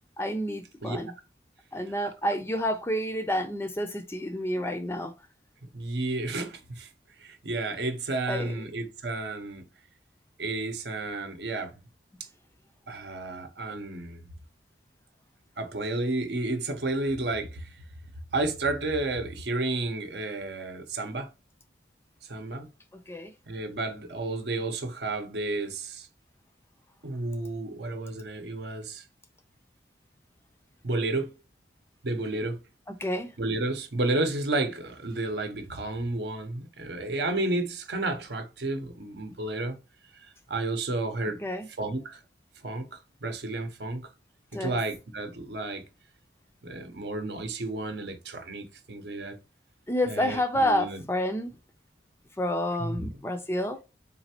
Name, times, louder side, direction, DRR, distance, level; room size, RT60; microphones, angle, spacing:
voice 1, 0.2-1.1 1.7-5.1 8.3-8.5 23.1-23.3 33.0-33.3 41.4-41.7 44.5-44.8 49.9-51.6 52.4-53.8, equal, 15° left, 0.4 m, -29 dB
voice 2, 5.7-6.9 7.2-9.6 10.4-11.7 12.9-14.2 15.6-17.7 18.3-21.3 22.3-22.7 23.5-26.1 27.0-29.0 30.8-31.3 32.0-32.6 33.4-39.8 40.1-41.4 41.8-42.2 42.6-44.1 44.6-45.8 46.6-49.4 50.1-51.0 52.8-53.1, right 2 dB, 70° right, 0.7 m, -31 dB
4.0 x 3.3 x 2.8 m
head